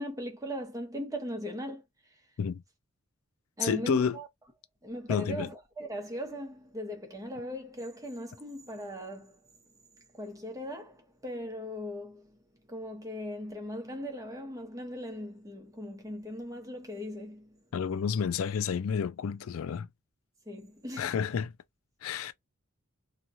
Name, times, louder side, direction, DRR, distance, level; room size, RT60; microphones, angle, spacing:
voice 1, 0.0-1.8 3.6-4.3 4.8-9.4 10.1-12.4 12.7-17.6 20.5-21.2, equal, 15° right, 0.9 m, -39 dB
voice 2, 3.6-4.2 5.1-5.5 17.7-19.9 21.0-21.5 22.0-22.3, left 7 dB, 85° left, 0.4 m, -30 dB
2.9 x 2.3 x 2.6 m
head